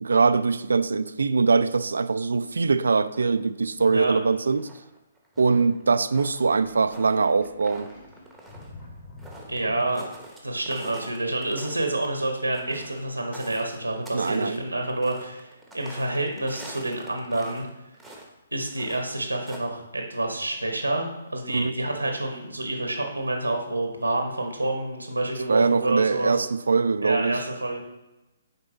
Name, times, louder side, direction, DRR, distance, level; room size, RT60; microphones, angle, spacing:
voice 1, 0.0-4.7 5.4-7.9 14.1-14.6 21.5-21.7 25.5-27.4, right 4 dB, 70° right, 13 dB, 0.3 m, -22 dB
sound 1, 3.1-4.2 4.5-10.4 10.7-17.7 17.9-18.3 18.6-19.6, right 1 dB, ahead, 1.0 m, -46 dB
Sink (filling or washing), 6.5-10.3, left 2 dB, 45° left, 1.6 m, -47 dB
voice 2, 9.5-10.1 10.4-17.7 18.5-26.4 27.0-27.8, right 2 dB, 90° right, 3 dB, 0.9 m, -28 dB
6.6 x 4.4 x 3.9 m, 1.0 s
figure-of-eight pair, 130°, 0 cm